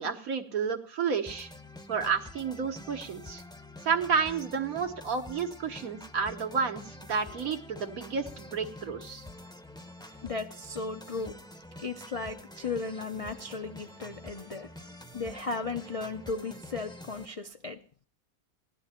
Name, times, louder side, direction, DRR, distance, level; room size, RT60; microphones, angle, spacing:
voice 1, 0.0-1.5 1.9-3.4 3.8-9.2, right 6 dB, 90° right, 1.8 m, -31 dB
sound 1, 1.3-17.3, left 1 dB, 5° left, 0.5 m, -47 dB
voice 2, 10.0-11.4 11.8-14.7 15.1-17.8, left 4 dB, 60° left, 0.3 m, -36 dB
16.0 x 11.0 x 4.3 m
omnidirectional pair, 1.5 m